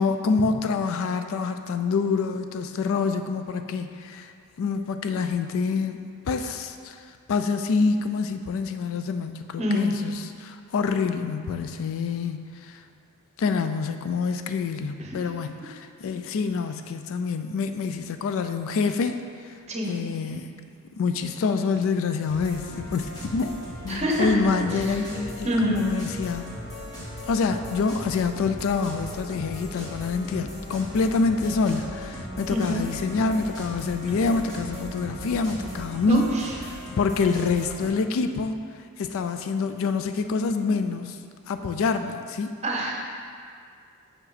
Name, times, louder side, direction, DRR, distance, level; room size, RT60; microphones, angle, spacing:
voice 1, 0.0-4.3 4.6-6.0 6.3-7.0 7.3-12.8 13.4-19.6 19.9-26.6 27.3-36.4 36.7-38.5 39.0-41.2 41.5-42.5, left 4 dB, 65° left, 8 dB, 0.3 m, -26 dB
voice 2, 9.6-9.9 15.0-15.2 19.7-19.9 23.9-24.3 25.4-25.9 32.5-32.8 36.1-36.5 42.6-42.9, equal, 30° right, -1 dB, 0.9 m, -25 dB
sound 1, 22.3-37.9, equal, 15° left, 1.5 m, -38 dB
5.9 x 5.5 x 4.1 m, 2.2 s
head